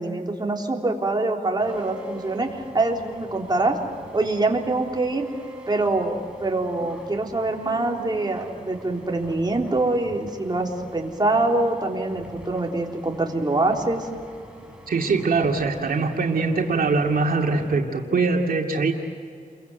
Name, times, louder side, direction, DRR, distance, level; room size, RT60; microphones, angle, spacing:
voice 1, 0.0-3.8 4.1-5.3 5.7-14.1, right 2 dB, 30° right, 0 dB, 3.6 m, -24 dB
sound 1, 1.6-17.8, right 1 dB, 5° right, 5.4 m, -44 dB
voice 2, 14.9-18.9, right 4 dB, 85° right, 1 dB, 2.4 m, -22 dB
30.0 x 23.0 x 8.1 m, 2.3 s
wide cardioid pair, 80°, 15 cm